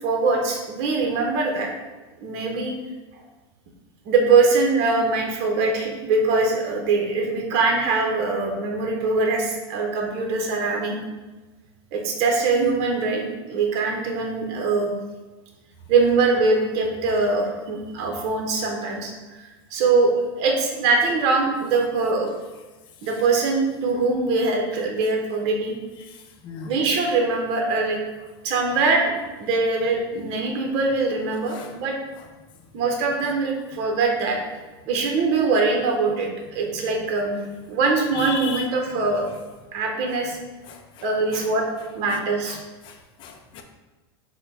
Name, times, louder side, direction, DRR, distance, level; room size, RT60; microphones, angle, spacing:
voice 1, 0.0-1.7 2.2-2.7 4.1-11.0 11.9-14.9 15.9-19.1 19.4-22.3 23.0-25.8 26.6-28.0 28.4-29.1 29.4-32.0 32.7-34.4 34.9-37.4 37.7-39.3 39.7-40.4 41.0-41.7 41.9-42.6, right 3 dB, 50° right, 1 dB, 0.8 m, -22 dB
voice 2, 26.4-26.7 31.5-31.7 38.1-38.7 40.7-41.4 42.1-42.2 42.5-42.6 42.8-43.6, left 7 dB, 35° left, 3 dB, 0.5 m, -37 dB
4.4 x 2.2 x 4.0 m, 1.2 s
supercardioid pair, 130°, 14 cm